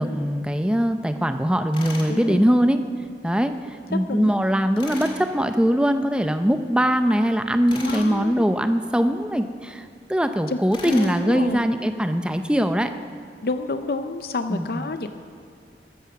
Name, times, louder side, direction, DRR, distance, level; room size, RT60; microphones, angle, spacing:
voice 1, 0.0-2.8 3.2-12.9 14.5-14.9, equal, 5° right, 8 dB, 0.5 m, -22 dB
Tools, 1.7-2.1 4.8-5.2 7.7-8.1 10.7-11.2, left 2 dB, 30° left, 1.8 m, -36 dB
voice 2, 2.1-2.6 4.1-4.3 7.8-8.5 10.5-10.6 10.8-11.6 13.4-15.1, left 3 dB, 60° left, 9 dB, 0.6 m, -29 dB
14.5 x 13.5 x 5.9 m, 2.3 s
head